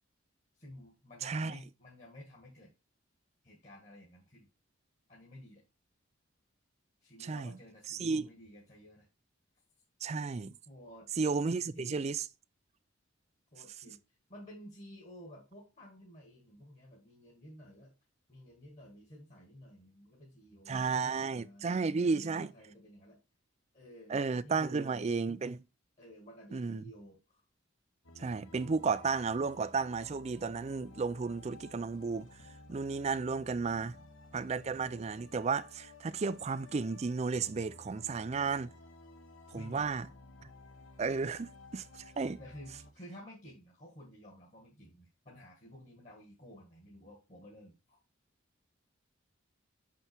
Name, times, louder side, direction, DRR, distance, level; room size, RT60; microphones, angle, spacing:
voice 1, 0.5-2.7 3.4-4.5 5.1-5.6 7.0-9.1 10.6-11.1 11.7-12.1 13.5-14.0 14.3-17.9 18.3-23.2 23.7-25.3 26.0-27.4 33.7-34.1 39.5-39.9 42.4-48.0, equal, 35° left, 1.6 m, -53 dB
voice 2, 1.2-1.6 7.2-7.6 7.9-8.3 10.0-10.5 11.2-12.3 20.7-22.5 24.1-25.6 26.5-26.8 28.2-32.3 32.7-34.0 34.3-38.7 39.5-40.1 41.0-42.4, right 4 dB, 30° right, 0.4 m, -33 dB
sound 1, 28.0-42.9, left 2 dB, 70° left, 1.3 m, -55 dB
6.0 x 5.6 x 4.4 m
head